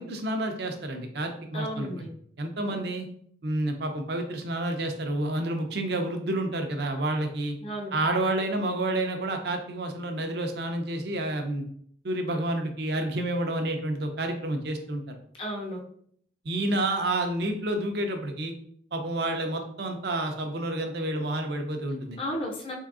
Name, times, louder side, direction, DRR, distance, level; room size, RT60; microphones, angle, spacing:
voice 1, 0.0-2.1 2.4-3.1 3.4-7.6 7.9-11.6 12.0-15.0 16.4-18.5 18.9-22.2, right 1 dB, 60° right, 5 dB, 0.5 m, -29 dB
voice 2, 1.5-2.1 7.6-7.9 15.4-15.8 22.2-22.7, equal, 30° left, -1 dB, 0.5 m, -33 dB
3.6 x 3.3 x 2.4 m, 0.64 s
head